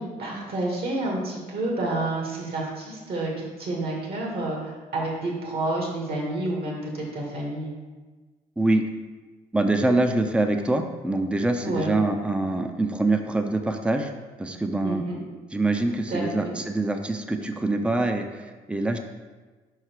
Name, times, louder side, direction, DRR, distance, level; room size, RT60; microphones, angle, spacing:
voice 1, 0.0-7.7 11.6-12.0 14.8-15.2 16.1-16.6, right 2 dB, 60° right, -1 dB, 2.2 m, -29 dB
voice 2, 9.5-14.1 14.4-15.0 15.5-19.0, right 2 dB, 5° right, 5 dB, 0.6 m, -24 dB
5.6 x 4.7 x 4.7 m, 1.3 s
hypercardioid pair, 55°, 18 cm